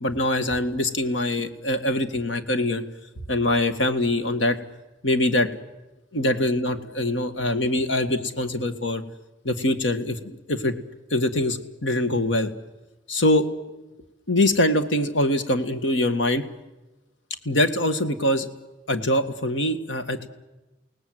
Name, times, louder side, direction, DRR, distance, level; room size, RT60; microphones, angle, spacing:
voice 1, 0.0-2.8 3.3-4.6 5.0-5.5 6.1-9.0 9.4-10.8 11.1-12.5 13.1-13.4 14.3-16.4 17.5-18.5 18.9-20.3, left 1 dB, 90° left, 9 dB, 1.8 m, -23 dB
29.5 x 18.5 x 7.9 m, 1.1 s
head